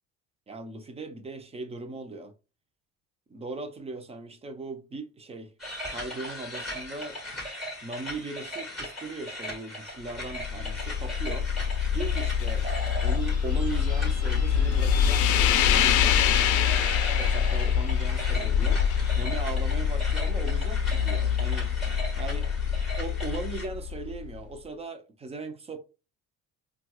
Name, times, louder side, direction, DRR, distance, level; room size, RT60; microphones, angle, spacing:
voice 1, 0.5-2.3 3.3-5.5 5.9-7.2 7.8-11.5 11.9-12.7 13.0-16.8 17.2-21.8 22.2-22.5 23.0-25.8, right 3 dB, 20° right, 0.5 m, -38 dB
sound 1, 5.6-23.7, left 1 dB, ahead, 1.4 m, -38 dB
sound 2, 10.2-24.3, left 8 dB, 65° left, 0.5 m, -25 dB
4.3 x 2.3 x 2.3 m
cardioid pair, 145°, 33 cm